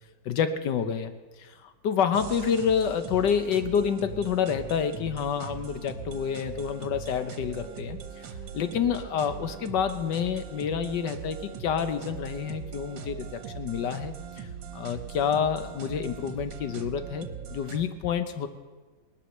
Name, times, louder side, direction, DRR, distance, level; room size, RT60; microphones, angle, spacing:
voice 1, 0.2-1.1 1.4-8.0 8.5-14.5 14.7-18.5, left 7 dB, 65° left, 10 dB, 1.6 m, -28 dB
sound 1, 2.1-17.9, right 7 dB, 75° right, 1.7 m, -40 dB
19.0 x 11.5 x 6.5 m, 1.4 s
omnidirectional pair, 2.1 m